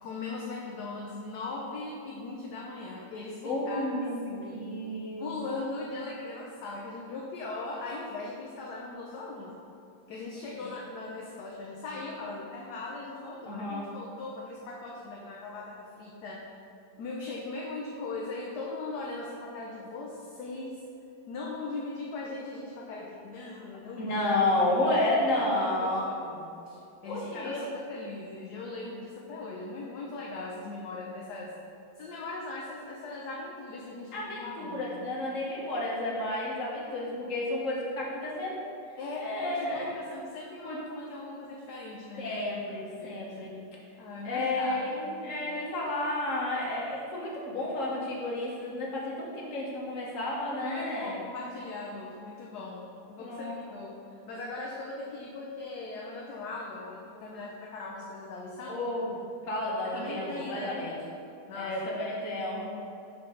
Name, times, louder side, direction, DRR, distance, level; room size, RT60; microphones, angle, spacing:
voice 1, 0.0-3.9 4.3-4.7 5.2-9.5 10.1-16.5 17.0-20.8 21.3-24.2 25.3-31.5 32.0-35.1 39.0-42.4 43.0-43.1 44.0-45.0 50.6-54.0 54.3-58.8 59.8-60.8 61.5-61.8, left 3 dB, 65° left, -2 dB, 1.1 m, -39 dB
voice 2, 3.4-5.4 13.4-13.9 24.0-26.0 27.0-27.6 34.1-38.6 39.2-39.9 40.6-40.8 42.2-43.5 44.2-51.2 53.2-53.8 58.6-59.1 59.4-61.0 61.5-62.7, left 1 dB, 45° left, -4 dB, 1.4 m, -31 dB
6.0 x 5.5 x 3.8 m, 2.7 s
omnidirectional pair, 2.1 m